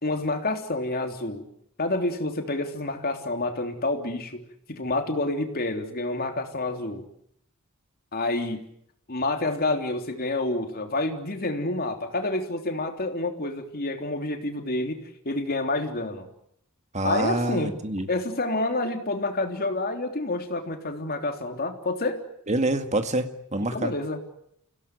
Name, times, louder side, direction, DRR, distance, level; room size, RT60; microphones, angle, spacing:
voice 1, 0.0-1.5 1.8-4.4 4.7-7.0 8.1-8.7 9.1-15.0 15.3-16.3 17.0-17.7 18.1-22.2 23.7-24.2, left 2 dB, 45° left, 5 dB, 3.4 m, -28 dB
voice 2, 16.9-18.1 22.5-23.9, right 2 dB, 30° right, 8 dB, 2.1 m, -26 dB
29.5 x 17.0 x 9.5 m, 0.74 s
head